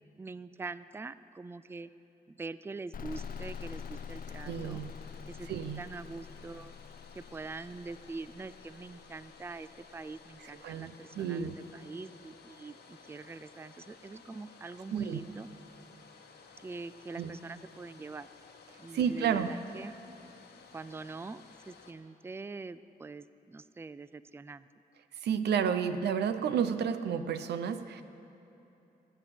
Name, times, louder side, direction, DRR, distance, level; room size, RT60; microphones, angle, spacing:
voice 1, 0.2-1.9 2.3-4.8 5.3-5.5 5.8-6.8 7.1-15.5 16.6-18.3 18.8-19.9 20.7-24.7, right 3 dB, 15° right, 15 dB, 0.4 m, -44 dB
sound 1, 2.9-10.5, left 7 dB, 55° left, 0.5 m, -46 dB
Domestic sounds home sounds, 3.1-21.9, left 5 dB, 80° left, 1.3 m, -56 dB
voice 2, 4.4-4.9 5.5-5.8 10.6-11.6 14.9-15.2 17.2-17.3 18.9-19.5 25.2-28.0, right 7 dB, 85° right, 11 dB, 0.6 m, -31 dB
18.5 x 8.1 x 6.0 m, 3.0 s
cardioid pair, 60°, 17 cm